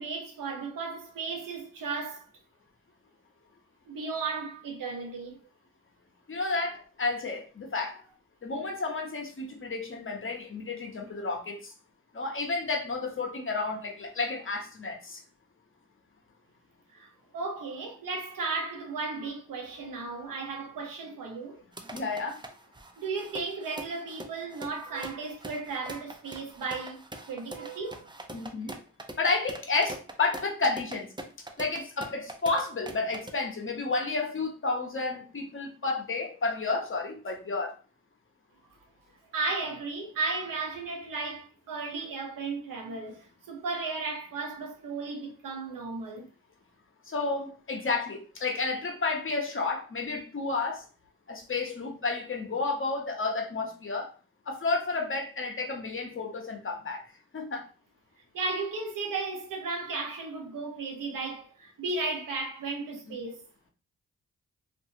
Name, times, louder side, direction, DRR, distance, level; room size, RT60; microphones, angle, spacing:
voice 1, 0.0-2.3 3.9-5.4 16.9-21.6 23.0-27.0 27.3-28.1 39.3-46.3 58.3-63.4, right 4 dB, 85° right, 0.7 m, -35 dB
voice 2, 6.3-8.0 8.4-11.7 12.1-15.2 21.9-22.4 28.3-28.8 29.2-31.1 31.6-37.8 47.1-50.8 51.3-54.1 54.5-57.0 57.3-57.7 63.1-63.2, left 3 dB, 40° left, 0.9 m, -31 dB
sound 1, 21.7-33.3, right 1 dB, 15° right, 0.5 m, -43 dB
2.6 x 2.5 x 2.7 m
cardioid pair, 45°, 32 cm